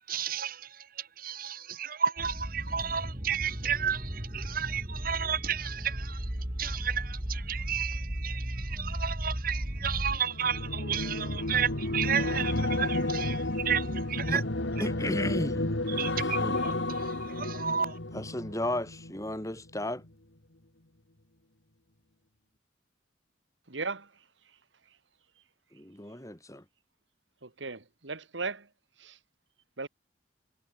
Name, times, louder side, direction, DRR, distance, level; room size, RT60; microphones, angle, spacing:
voice 1, 0.1-0.7 1.2-6.2 6.6-14.4 14.8-14.9 16.0-17.9, right 8 dB, 50° right, 1.8 m, -32 dB
sound 1, 2.2-10.2, equal, 30° right, 2.8 m, -35 dB
sound 2, 10.0-19.4 19.7-20.1, left 2 dB, 80° left, 2.6 m, -31 dB
voice 2, 14.8-15.8 16.2-16.6 18.1-20.0 25.7-26.6, left 1 dB, 15° left, 6.0 m, -34 dB
voice 3, 23.7-24.1 27.4-28.7 29.0-29.2 29.8-29.9, right 4 dB, 80° right, 2.1 m, -36 dB
head